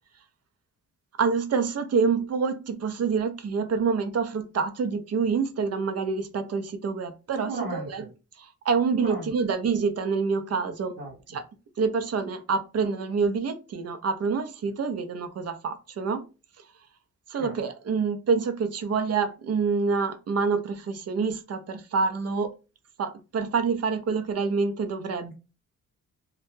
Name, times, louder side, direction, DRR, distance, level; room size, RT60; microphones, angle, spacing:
voice 1, 1.2-8.1 8.4-10.9 11.3-11.4 11.8-16.2 17.3-22.5 23.0-25.3, right 5 dB, 45° right, 0.5 m, -27 dB
voice 2, 7.4-8.1 9.0-9.3 11.0-11.1 17.4-17.5, right 2 dB, 75° right, 0.8 m, -34 dB
2.2 x 2.2 x 3.0 m
supercardioid pair, 50°, 36 cm